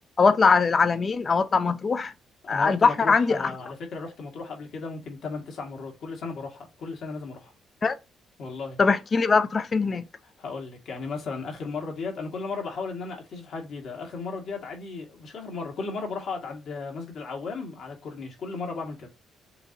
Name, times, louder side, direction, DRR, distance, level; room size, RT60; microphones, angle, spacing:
voice 1, 0.2-2.1 2.5-3.5 7.8-8.0 8.8-10.0, left 4 dB, 40° left, 0.5 m, -21 dB
voice 2, 2.4-7.5 8.4-8.8 10.4-19.1, left 4 dB, 65° left, 1.8 m, -35 dB
6.7 x 2.9 x 2.7 m
cardioid pair, 90°, 0 cm